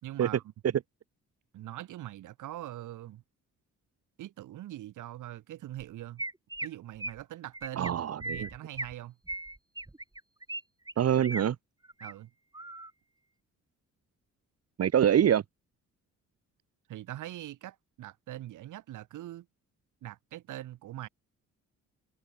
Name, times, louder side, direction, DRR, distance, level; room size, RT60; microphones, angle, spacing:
voice 1, 0.0-0.4 1.5-3.2 4.2-6.2 6.6-9.2 12.0-12.3 16.9-19.5 20.0-21.1, right 14 dB, 80° right, 5.8 m, -42 dB
Chirp tweet, 5.8-5.9 6.2-6.7 7.0-7.2 7.5-7.9 8.2-8.9 9.3-10.6 10.9-11.4 11.8-12.1 12.5-12.9, right 2 dB, 15° right, 7.4 m, -38 dB
voice 2, 7.8-8.5 11.0-11.5 14.8-15.4, right 9 dB, 55° right, 1.5 m, -25 dB
cardioid pair, 90°, 30 cm